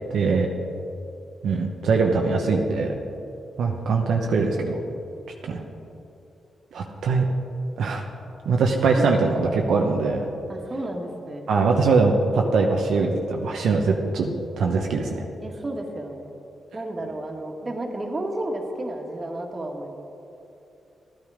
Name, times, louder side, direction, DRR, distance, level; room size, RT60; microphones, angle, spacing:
voice 1, 0.1-0.5 1.4-2.9 3.6-4.8 5.4-5.6 6.7-7.2 7.8-8.0 8.4-10.3 11.5-15.2, right 4 dB, 80° right, 1 dB, 0.9 m, -22 dB
voice 2, 10.5-11.5 15.4-16.3 16.7-19.9, right 1 dB, 35° right, 1 dB, 2.0 m, -32 dB
13.5 x 9.8 x 5.0 m, 2.8 s
cardioid pair, 60°, 0 cm